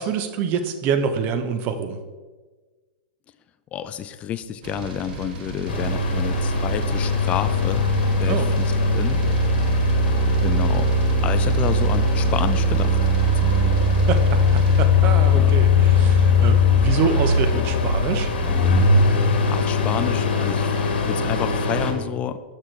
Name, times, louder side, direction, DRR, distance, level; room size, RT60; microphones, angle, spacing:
voice 1, 0.0-2.0 8.3-8.5 14.1-18.3, right 6 dB, 35° right, 8 dB, 0.7 m, -26 dB
voice 2, 3.7-9.2 10.4-10.9 11.2-13.0 13.3-13.8 15.3-15.5 19.5-20.7 21.1-22.4, left 9 dB, 25° left, 11 dB, 0.3 m, -29 dB
sound 1, 4.6-14.9, right 3 dB, 65° right, 1.2 m, -36 dB
sound 2, 5.7-21.9, left 2 dB, 70° left, 1.2 m, -19 dB
6.3 x 6.0 x 3.2 m, 1.3 s
hypercardioid pair, 135°, 5 cm